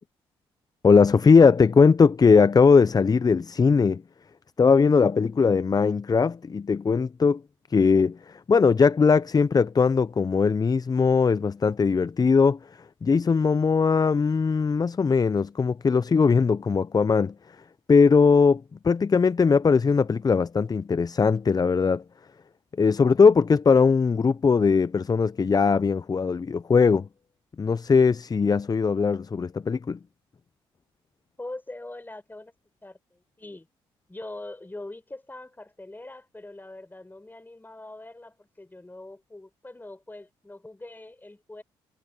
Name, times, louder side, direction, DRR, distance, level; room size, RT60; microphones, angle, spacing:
voice 1, 0.8-4.0 4.6-7.4 7.7-12.6 13.0-17.3 17.9-22.0 22.8-27.1 27.6-30.0, left 5 dB, 30° left, 0.7 m, -20 dB
voice 2, 31.4-32.5 32.8-33.7 34.1-41.6, left 2 dB, 15° left, 4.9 m, -42 dB
hypercardioid pair, 50°, 12 cm